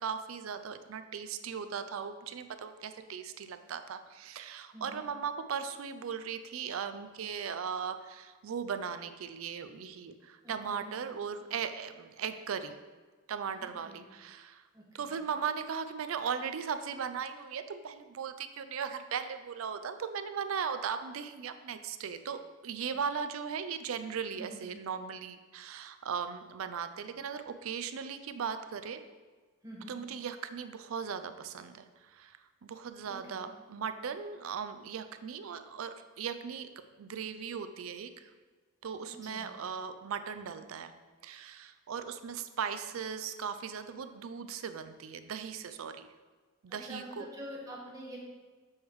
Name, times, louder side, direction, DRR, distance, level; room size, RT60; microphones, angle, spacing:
voice 1, 0.0-12.8 13.3-14.6 14.9-29.0 29.9-36.7 37.0-38.3 38.8-40.9 41.2-46.1 46.6-47.3, right 7 dB, 80° right, 10 dB, 0.4 m, -38 dB
voice 2, 4.7-5.1 10.4-10.9 13.6-14.0 14.7-15.1 24.4-24.7 29.6-30.0 33.0-33.5 39.1-39.5 46.7-48.2, equal, 15° right, -4 dB, 1.4 m, -47 dB
7.2 x 3.2 x 4.7 m, 1.4 s
head